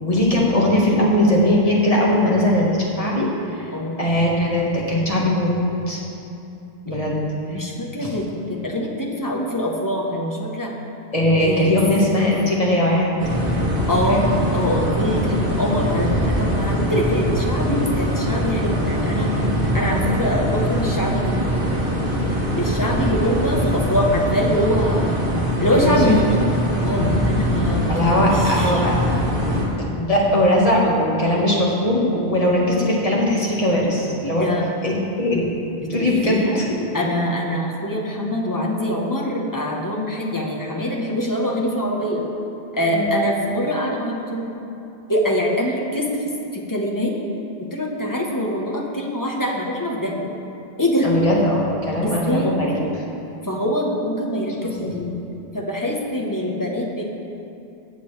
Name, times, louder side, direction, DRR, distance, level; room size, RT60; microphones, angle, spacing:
voice 1, 0.0-3.7 4.0-5.5 5.9-6.0 6.9-7.2 8.0-8.1 11.1-13.1 14.1-14.3 19.8-20.0 23.2-23.3 25.7-26.1 27.9-28.9 29.5-34.5 34.8-35.4 35.9-36.8 42.9-43.1 51.0-53.0 54.8-55.1, left 1 dB, 35° left, -4 dB, 1.7 m, -20 dB
voice 2, 3.7-4.1 6.9-7.1 7.5-10.7 11.4-11.8 13.9-14.2 14.5-19.3 19.7-21.5 22.6-25.1 25.6-26.3 26.8-28.8 34.3-34.7 35.8-36.6 36.9-42.2 42.7-44.5 45.1-47.1 47.6-50.1 50.8-51.1 52.0-52.6 53.4-55.1 55.5-57.0, equal, 20° left, -1 dB, 1.1 m, -24 dB
sound 1, 13.2-29.6, equal, 55° right, 1.7 m, -22 dB
18.0 x 6.8 x 3.3 m, 2.8 s
omnidirectional pair, 1.1 m